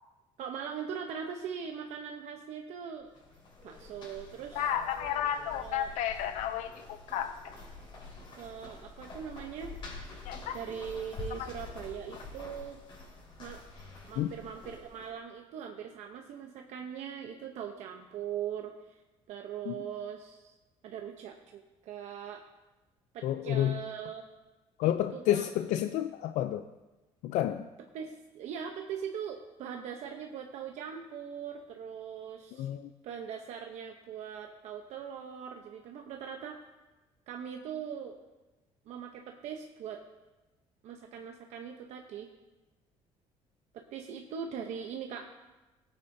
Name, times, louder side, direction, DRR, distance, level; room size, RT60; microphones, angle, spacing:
voice 1, 0.4-3.1 3.6-4.6 5.6-5.9 8.4-9.7 10.5-12.8 13.4-13.6 14.1-19.0 19.3-20.6 20.8-22.4 23.1-24.2 25.1-25.5 27.9-32.7 33.0-36.6 37.3-38.2 38.9-40.0 40.8-42.3 43.7-45.3, right 8 dB, 70° right, 3 dB, 0.8 m, -41 dB
sound 1, 3.0-15.1, left 3 dB, 45° left, 4.3 m, -47 dB
voice 2, 4.6-7.5 10.3-10.5 11.4-11.5 14.2-14.3 19.7-19.8 23.2-23.8 24.8-26.7 27.2-27.7 32.6-32.9, left 11 dB, 80° left, 9 dB, 0.4 m, -31 dB
17.5 x 8.8 x 2.7 m, 1.1 s
cardioid pair, 140°, 12 cm